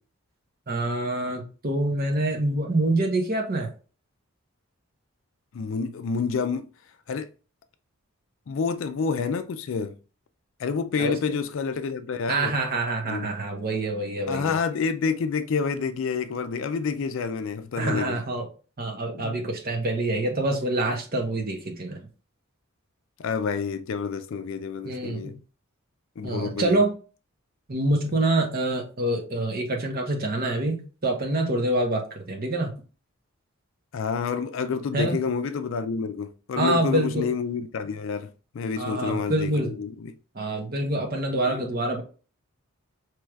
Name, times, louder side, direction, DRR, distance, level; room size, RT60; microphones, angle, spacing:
voice 1, 0.7-3.7 11.0-11.1 12.3-14.6 17.8-18.5 18.8-22.0 24.8-25.4 26.2-26.9 27.7-32.7 34.9-35.2 36.6-37.3 38.8-39.7 40.3-42.0, right 2 dB, 40° right, 0.9 m, -26 dB
voice 2, 5.5-6.7 7.1-7.3 8.5-10.0 10.6-12.5 13.0-13.3 14.3-18.2 19.1-19.4 23.2-25.3 26.2-26.8 33.9-40.1 41.4-41.6, left 5 dB, 60° left, 0.4 m, -28 dB
4.6 x 3.1 x 2.3 m
head